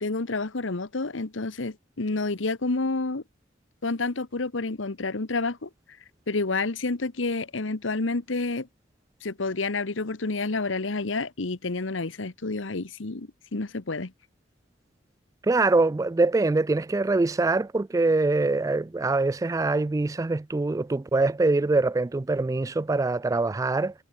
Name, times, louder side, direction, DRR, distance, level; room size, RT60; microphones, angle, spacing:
voice 1, 0.0-3.2 3.8-5.7 6.3-8.7 9.2-14.1, left 3 dB, 90° left, 1.2 m, -29 dB
voice 2, 15.4-23.9, right 3 dB, 15° right, 0.3 m, -24 dB
head